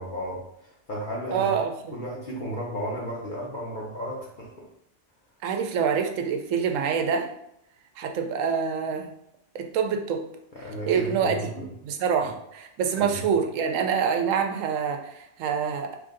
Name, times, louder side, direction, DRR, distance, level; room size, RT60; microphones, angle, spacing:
voice 1, 0.0-1.6 1.9-4.6 10.5-11.7 12.2-12.3 13.0-13.2, equal, 50° left, -5 dB, 0.7 m, -34 dB
voice 2, 1.3-2.0 5.4-7.3 8.0-9.1 9.5-10.2 10.9-16.0, right 6 dB, 85° right, 5 dB, 0.9 m, -26 dB
3.1 x 2.6 x 3.7 m, 0.78 s
omnidirectional pair, 1.3 m